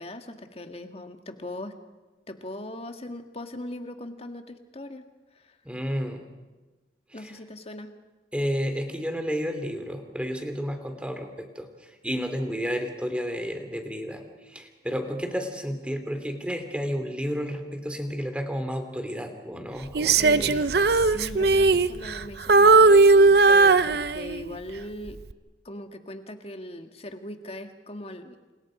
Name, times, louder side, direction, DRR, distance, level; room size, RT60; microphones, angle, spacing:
voice 1, 0.0-1.7 2.3-5.1 5.4-5.6 7.1-7.9 20.2-25.2 25.7-28.4, left 1 dB, 35° left, 6 dB, 1.8 m, -39 dB
voice 2, 5.6-6.2 7.1-7.4 8.3-20.6, equal, 5° right, 6 dB, 2.7 m, -31 dB
Female singing, 20.0-22.2 22.5-24.5 25.1-25.3, right 3 dB, 65° right, 0.7 m, -18 dB
29.0 x 28.5 x 5.1 m, 1.2 s
head